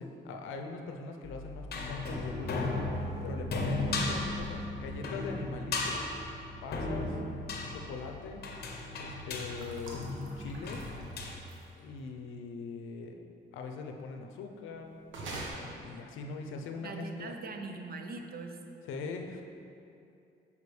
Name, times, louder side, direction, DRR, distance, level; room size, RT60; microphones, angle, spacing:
voice 1, 0.0-2.7 3.2-6.1 6.6-7.2 7.7-8.5 9.0-10.0 10.4-10.9 11.8-13.2 13.5-15.0 15.6-17.3 18.9-19.4, left 4 dB, 85° left, 4 dB, 0.6 m, -41 dB
sound 1, 1.2-11.3, left 2 dB, 55° left, 0.8 m, -36 dB
sound 2, 9.6-11.8 15.1-15.5, right 2 dB, 75° right, 1.1 m, -44 dB
voice 2, 16.8-18.6, right 3 dB, 50° right, 5 dB, 0.6 m, -41 dB
6.7 x 5.0 x 3.2 m, 2.6 s
cardioid pair, 90°, 20 cm